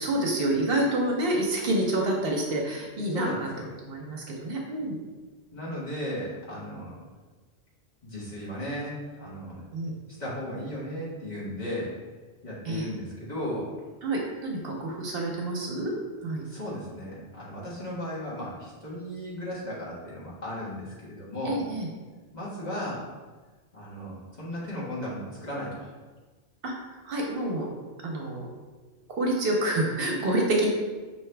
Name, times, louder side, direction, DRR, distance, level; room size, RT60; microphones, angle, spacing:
voice 1, 0.0-3.5 3.8-5.0 9.7-9.9 12.6-12.9 14.0-15.9 16.2-16.4 21.5-21.9 26.6-26.7 27.0-27.7 28.0-28.5 29.2-30.7, right 1 dB, 60° right, 0 dB, 0.8 m, -28 dB
voice 2, 3.1-3.7 5.5-7.0 8.0-9.7 10.2-11.9 12.4-13.7 16.4-21.6 22.3-23.0 23.7-25.9, equal, 40° left, -7 dB, 1.4 m, -35 dB
5.6 x 2.8 x 3.2 m, 1.3 s
omnidirectional pair, 1.1 m